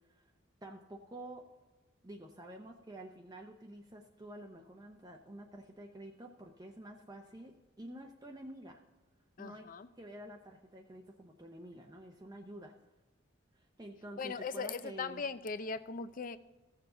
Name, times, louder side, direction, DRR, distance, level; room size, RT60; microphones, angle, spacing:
voice 1, 0.6-1.5 2.0-8.8 9.4-9.7 10.0-12.7 13.5-15.2, right 1 dB, 20° right, 2 dB, 0.6 m, -49 dB
voice 2, 9.4-9.9 14.2-16.4, left 4 dB, 45° left, 13 dB, 0.5 m, -39 dB
15.5 x 7.0 x 3.9 m, 1.1 s
head